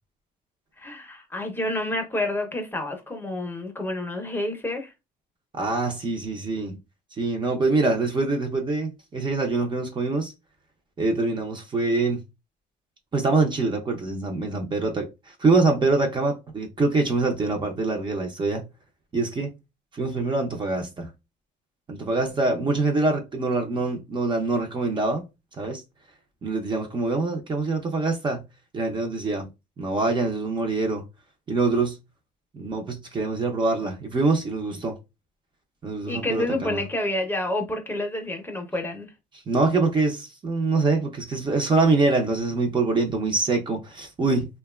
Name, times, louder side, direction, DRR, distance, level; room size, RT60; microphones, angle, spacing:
voice 1, 0.8-4.9 36.1-39.1, left 1 dB, 10° left, 0.6 m, -29 dB
voice 2, 5.5-6.8 7.2-10.3 11.0-12.2 13.1-18.6 19.1-19.6 19.9-21.1 21.9-25.2 25.6-25.8 26.4-28.4 28.7-29.5 29.8-31.0 31.5-32.0 32.5-34.9 35.8-36.8 39.5-44.5, right 3 dB, 30° right, 0.6 m, -24 dB
2.8 x 2.2 x 2.2 m
cardioid pair, 110°, 17 cm